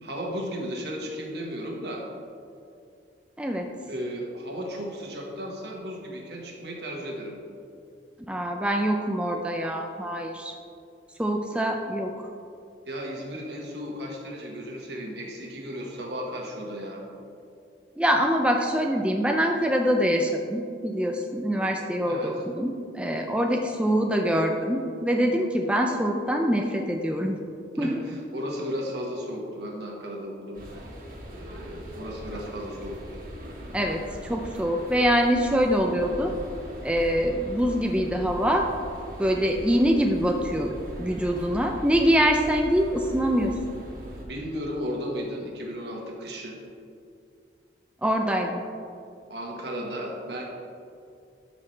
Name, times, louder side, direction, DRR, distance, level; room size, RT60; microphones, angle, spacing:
voice 1, 0.0-2.0 3.9-7.4 12.9-17.1 22.0-22.4 27.7-30.6 31.3-33.0 44.1-46.6 49.3-50.4, equal, 70° right, 0 dB, 1.5 m, -35 dB
voice 2, 3.4-3.7 8.3-10.5 11.2-12.3 18.0-27.4 27.8-28.0 33.7-36.3 36.8-38.7 39.2-43.5 48.0-48.6, equal, 5° right, 2 dB, 0.4 m, -24 dB
sound 1, 30.5-44.2, equal, 50° right, 1.7 m, -40 dB
12.5 x 5.9 x 3.3 m, 2.4 s
head